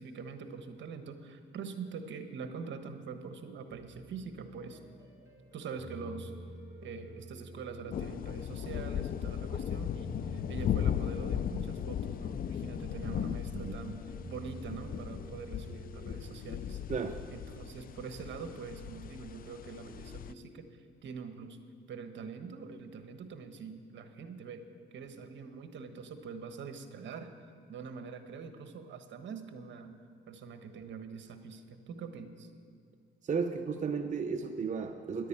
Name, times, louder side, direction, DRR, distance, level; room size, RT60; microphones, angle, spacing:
voice 1, 0.0-4.8 5.5-6.3 6.8-16.8 17.3-21.6 21.9-24.6 24.9-27.3 27.7-29.9 30.3-32.5, right 5 dB, 65° right, 7 dB, 1.3 m, -44 dB
sound 1, 3.7-20.4, right 1 dB, 15° right, 3.2 m, -51 dB
sound 2, 7.9-20.3, left 9 dB, 45° left, 0.4 m, -37 dB
voice 2, 33.2-35.3, right 5 dB, 40° right, 5 dB, 0.7 m, -34 dB
11.0 x 10.0 x 8.8 m, 2.3 s
cardioid pair, 90°, 20 cm